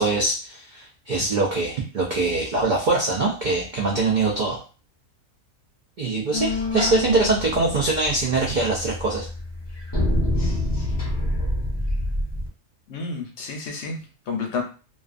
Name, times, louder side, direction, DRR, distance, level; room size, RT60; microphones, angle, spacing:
voice 1, 0.0-4.6 6.0-9.3, right 3 dB, 75° right, -2 dB, 0.4 m, -23 dB
sound 1, 6.3-12.5, left 1 dB, 35° left, 0.4 m, -27 dB
voice 2, 12.9-14.6, left 4 dB, 65° left, 2 dB, 0.8 m, -30 dB
2.4 x 2.3 x 2.4 m, 0.36 s
omnidirectional pair, 1.4 m